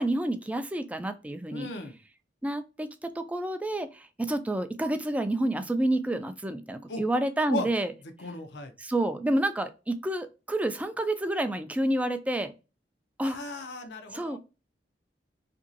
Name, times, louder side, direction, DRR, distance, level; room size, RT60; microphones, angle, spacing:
voice 1, 0.0-1.7 2.4-7.9 8.8-12.5 13.2-13.4 14.1-14.4, right 1 dB, 10° right, 9 dB, 0.3 m, -29 dB
voice 2, 1.5-2.0 6.9-7.0 7.5-7.7 8.2-8.7 13.2-14.4, left 2 dB, 75° left, 6 dB, 0.6 m, -36 dB
2.9 x 2.6 x 2.5 m, 0.29 s
head